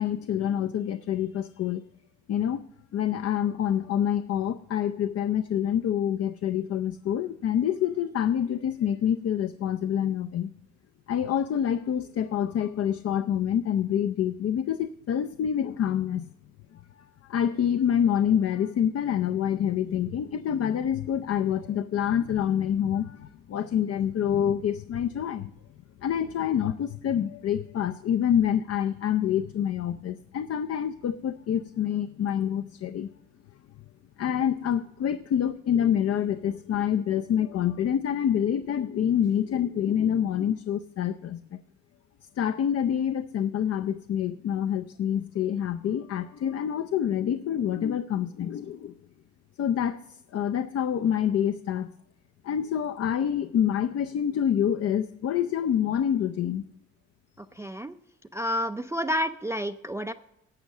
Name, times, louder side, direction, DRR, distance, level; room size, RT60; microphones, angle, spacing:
voice 1, 0.0-1.8 2.3-2.7 2.9-10.5 11.1-16.3 16.7-25.5 26.0-33.1 34.2-41.6 42.4-48.9 49.6-50.0 50.3-51.9 52.4-56.6, left 9 dB, 55° left, 10 dB, 0.5 m, -27 dB
voice 2, 57.4-58.0 58.3-60.1, equal, 10° right, 10 dB, 0.4 m, -30 dB
11.5 x 7.1 x 6.5 m, 0.85 s
cardioid pair, 90°, 30 cm